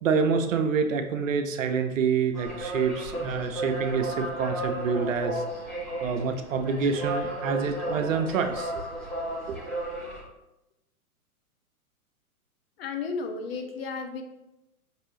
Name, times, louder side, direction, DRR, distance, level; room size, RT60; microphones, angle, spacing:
voice 1, 0.0-5.4 6.0-8.8 9.5-9.6, right 5 dB, 60° right, 7 dB, 0.6 m, -27 dB
sound 1, 2.3-10.2, right 1 dB, ahead, 0.6 m, -33 dB
voice 2, 12.8-14.2, left 4 dB, 45° left, 5 dB, 0.6 m, -33 dB
5.2 x 2.7 x 3.1 m, 0.91 s
hypercardioid pair, 115°, 44 cm